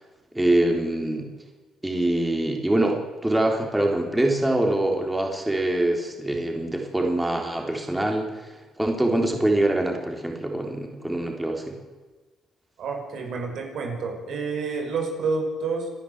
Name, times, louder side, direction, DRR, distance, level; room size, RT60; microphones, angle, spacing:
voice 1, 0.3-1.3 1.8-11.8, right 1 dB, 10° right, 2 dB, 3.7 m, -24 dB
voice 2, 12.8-15.9, right 4 dB, 70° right, 3 dB, 5.5 m, -29 dB
30.0 x 11.5 x 8.1 m, 1.3 s
cardioid pair, 90°, 0 cm